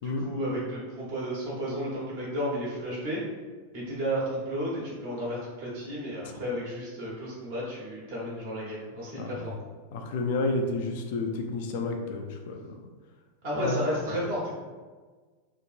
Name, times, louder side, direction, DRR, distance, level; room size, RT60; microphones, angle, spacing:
voice 1, 0.0-3.2 3.7-9.5 13.4-14.5, equal, 50° right, -6 dB, 1.2 m, -32 dB
voice 2, 9.2-9.5 9.9-12.7 13.6-13.8, left 2 dB, 50° left, 3 dB, 0.4 m, -30 dB
2.9 x 2.5 x 2.5 m, 1.4 s
figure-of-eight pair, 90°, 0 cm